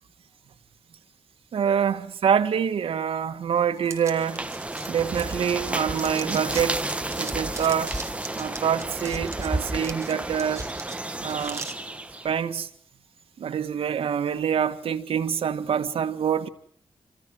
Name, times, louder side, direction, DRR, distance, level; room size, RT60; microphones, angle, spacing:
voice 1, 1.5-4.5 4.9-6.8 7.2-8.0 8.3-10.7 11.2-11.7 12.2-12.7 13.4-16.5, right 8 dB, 85° right, 1.9 m, -26 dB
sound 1, 3.8-5.7 6.0-11.7, right 4 dB, 30° right, 3.3 m, -40 dB
sound 2, 4.0-12.4, right 2 dB, 15° right, 1.6 m, -32 dB
28.5 x 25.5 x 6.4 m
wide cardioid pair, 130°, 9 cm